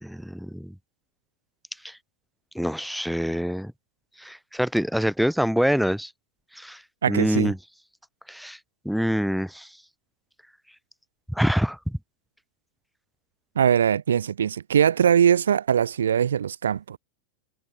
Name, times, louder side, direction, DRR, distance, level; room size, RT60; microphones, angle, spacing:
voice 1, 0.0-0.7 1.8-1.9 2.6-3.7 4.2-6.1 6.6-6.8 7.1-7.6 8.3-8.6 8.9-9.7 11.3-12.0, equal, ahead, 0.5 m, -25 dB
voice 2, 7.0-7.5 13.6-17.0, right 8 dB, 70° right, 0.5 m, -21 dB
figure-of-eight pair, 85°, 0 cm